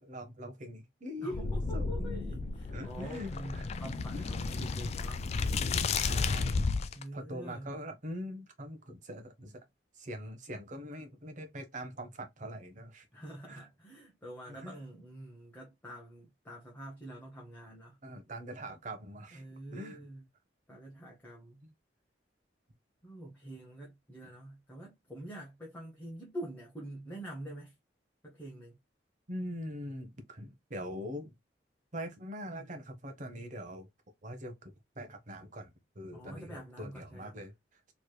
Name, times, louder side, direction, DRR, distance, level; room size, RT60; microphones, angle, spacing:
voice 1, 0.0-2.3 2.7-3.7 4.1-4.3 6.0-6.6 7.1-9.6 9.9-13.1 13.5-13.7 14.5-14.8 18.0-19.4 19.7-20.0 24.2-24.3 29.3-31.3 31.9-33.9 34.2-37.9, equal, 40° right, 0.8 m, -43 dB
voice 2, 1.2-5.3 6.9-7.7 13.1-18.0 19.3-20.2 20.7-21.6 23.0-27.7 28.2-28.8 36.1-37.4, right 1 dB, 10° left, 0.8 m, -46 dB
sound 1, 1.3-7.0, left 4 dB, 35° left, 0.3 m, -33 dB
3.2 x 3.1 x 2.2 m
head